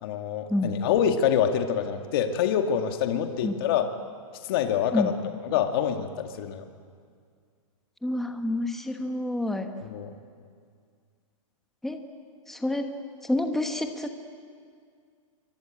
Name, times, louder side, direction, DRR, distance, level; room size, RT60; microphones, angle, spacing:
voice 1, 0.0-3.9 4.4-5.1 5.4-6.6 9.8-10.1, left 9 dB, 40° left, 5 dB, 2.1 m, -26 dB
voice 2, 8.0-9.7 11.8-12.0 12.5-12.9 13.2-14.3, left 1 dB, ahead, 5 dB, 1.2 m, -28 dB
27.0 x 23.5 x 8.9 m, 2.2 s
hypercardioid pair, 165°, 18 cm